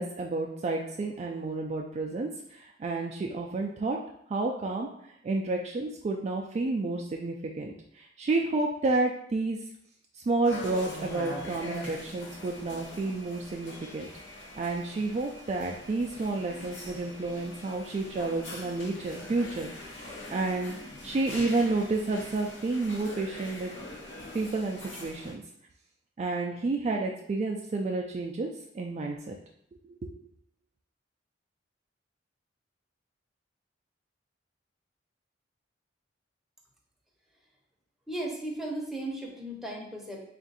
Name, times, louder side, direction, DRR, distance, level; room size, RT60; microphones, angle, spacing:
voice 1, 0.0-4.0 4.3-4.9 5.2-9.6 10.3-14.1 14.6-19.7 20.3-20.7 21.0-23.7 24.3-25.4 26.2-28.5 28.7-29.4 29.9-30.0, right 3 dB, 35° right, 1 dB, 0.3 m, -30 dB
sound 1, 10.4-25.3, left 1 dB, 75° left, 0.8 m, -43 dB
voice 2, 38.1-40.2, right 1 dB, ahead, -2 dB, 0.7 m, -36 dB
3.5 x 2.5 x 4.0 m, 0.70 s
head